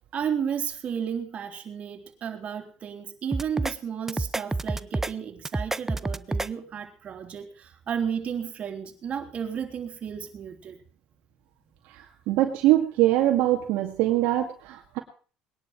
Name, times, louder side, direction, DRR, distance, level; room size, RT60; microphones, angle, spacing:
voice 1, 0.1-10.8, right 7 dB, 45° right, 3.5 m, -33 dB
sound 1, 3.3-3.7 4.1-5.1 5.5-6.5, right 2 dB, 10° right, 0.7 m, -28 dB
voice 2, 12.3-15.0, right 14 dB, 80° right, 2.1 m, -22 dB
21.0 x 11.0 x 6.0 m
supercardioid pair, 95°, 3 cm